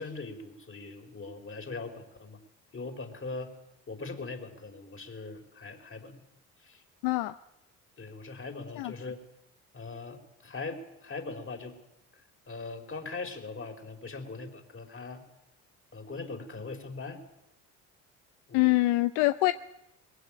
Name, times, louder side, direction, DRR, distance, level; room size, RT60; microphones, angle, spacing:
voice 1, 0.0-2.4 2.7-3.5 3.9-6.2 6.6-6.8 8.0-9.2 9.7-11.8 12.5-15.2 15.9-17.2 18.5-18.8, left 3 dB, 30° left, 5 dB, 4.7 m, -40 dB
voice 2, 7.0-7.4 8.8-8.9 18.5-19.5, left 19 dB, 70° left, 13 dB, 0.7 m, -24 dB
21.5 x 16.0 x 8.9 m, 0.87 s
hypercardioid pair, 60°, 42 cm